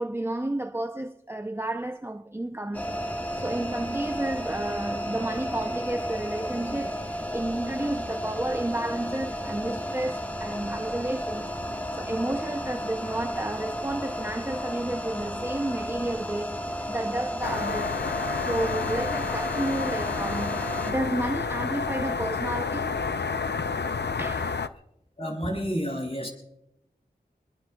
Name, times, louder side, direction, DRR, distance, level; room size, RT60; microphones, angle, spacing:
voice 1, 0.0-3.0 3.3-7.0 7.3-11.5 11.9-16.6 16.9-18.1 18.4-23.0 24.2-24.6, right 1 dB, 15° right, 0.6 m, -31 dB
sound 1, 2.7-20.9, equal, 10° left, 1.6 m, -33 dB
sound 2, 17.4-24.7, left 5 dB, 75° left, 0.6 m, -30 dB
voice 2, 25.2-26.3, equal, 35° left, 6.8 m, -30 dB
28.5 x 21.5 x 2.3 m
wide cardioid pair, 45°, 18 cm